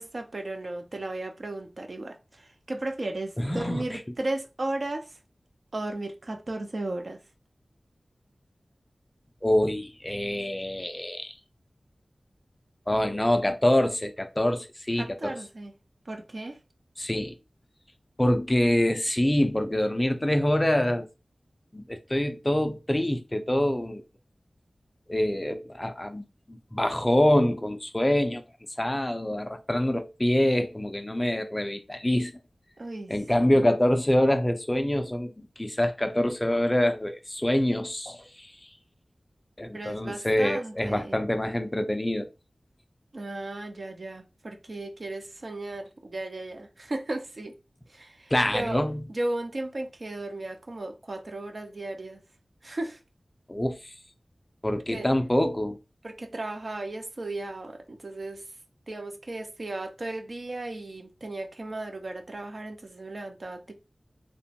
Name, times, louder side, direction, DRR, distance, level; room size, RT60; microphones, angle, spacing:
voice 1, 0.0-5.2 5.7-7.2 15.0-15.7 16.1-16.6 32.8-33.6 39.7-41.2 43.1-47.6 47.9-48.8 49.1-52.2 52.6-53.0 54.9-55.1 56.0-58.5 58.9-63.7, right 2 dB, 55° right, 0.5 m, -35 dB
voice 2, 3.4-4.0 9.4-11.3 12.9-15.4 17.0-17.4 18.2-21.1 21.7-24.0 25.1-28.4 28.8-32.3 33.1-38.5 39.6-42.3 48.3-49.0 53.5-53.9 54.6-55.8, left 1 dB, 20° left, 0.3 m, -25 dB
2.9 x 2.1 x 2.6 m
wide cardioid pair, 65°, 0 cm